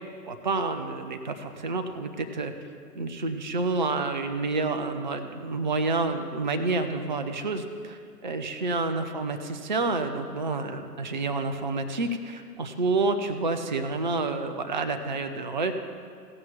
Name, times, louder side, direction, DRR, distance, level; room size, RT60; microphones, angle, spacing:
voice 1, 0.3-2.5 2.9-15.7, right 3 dB, 30° right, 8 dB, 0.4 m, -29 dB
16.0 x 5.7 x 7.3 m, 2.2 s
figure-of-eight pair, 125°, 49 cm